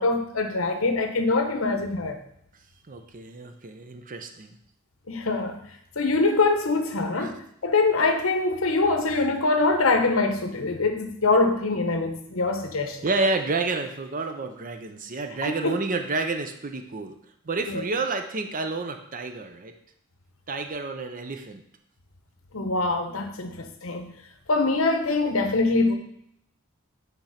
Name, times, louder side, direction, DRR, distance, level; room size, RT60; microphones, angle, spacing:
voice 1, 0.0-2.2 5.1-5.6 6.0-7.4 7.6-13.0 15.4-15.8 17.7-17.8 22.5-24.1 24.5-25.9, left 3 dB, 75° left, 5 dB, 1.1 m, -24 dB
voice 2, 2.9-4.6 7.1-7.3 13.0-17.2 17.4-19.8 20.5-21.6, right 3 dB, 40° right, 7 dB, 0.7 m, -30 dB
8.9 x 3.6 x 5.7 m, 0.69 s
head